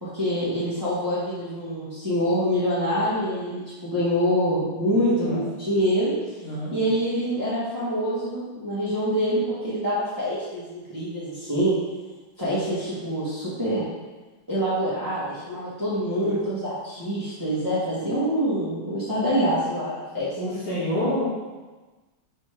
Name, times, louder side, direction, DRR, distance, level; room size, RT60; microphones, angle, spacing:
voice 1, 0.0-6.1 6.7-11.7 12.4-13.8 14.5-20.3, equal, 10° right, -11 dB, 1.5 m, -25 dB
voice 2, 4.9-5.4 6.4-6.7 16.2-16.5 20.1-21.2, equal, 80° left, -14 dB, 3.0 m, -29 dB
6.0 x 4.1 x 4.8 m, 1.2 s
omnidirectional pair, 2.3 m